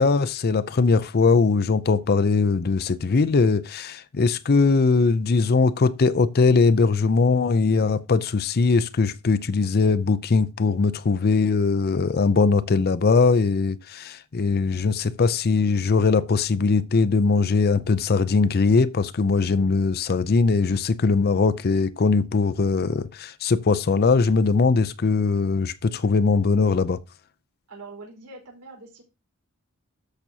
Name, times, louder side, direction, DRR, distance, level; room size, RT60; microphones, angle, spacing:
voice 1, 0.0-27.0, left 4 dB, 45° left, 0.5 m, -21 dB
voice 2, 27.7-29.0, right 3 dB, 80° right, 4.5 m, -43 dB
13.0 x 6.0 x 2.8 m
head